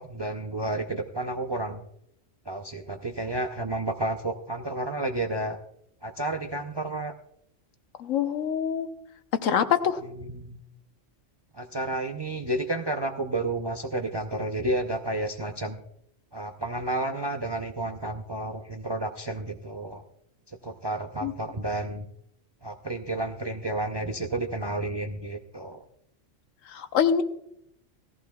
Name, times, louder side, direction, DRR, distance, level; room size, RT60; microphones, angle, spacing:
voice 1, 0.0-1.8 2.5-5.6 6.0-7.1 10.0-10.6 11.5-15.8 16.3-20.0 20.5-22.1 22.6-25.8, right 2 dB, 35° right, 5 dB, 0.4 m, -31 dB
voice 2, 8.0-8.9 9.4-10.0 21.2-21.3 26.7-27.2, left 8 dB, 85° left, 10 dB, 1.2 m, -25 dB
17.0 x 14.5 x 2.3 m, 0.75 s
omnidirectional pair, 1.3 m